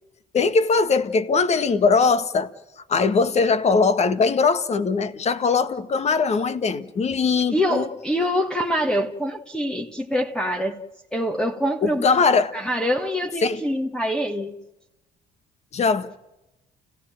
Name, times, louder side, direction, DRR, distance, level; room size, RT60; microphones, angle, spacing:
voice 1, 0.3-2.5 2.9-7.9 11.8-12.5 13.4-13.6 15.7-16.1, left 4 dB, 40° left, 1.6 m, -20 dB
voice 2, 7.5-10.8 11.1-12.1 12.5-14.5, equal, 5° left, 1.7 m, -25 dB
29.5 x 17.0 x 9.1 m
cardioid pair, 110°, 17 cm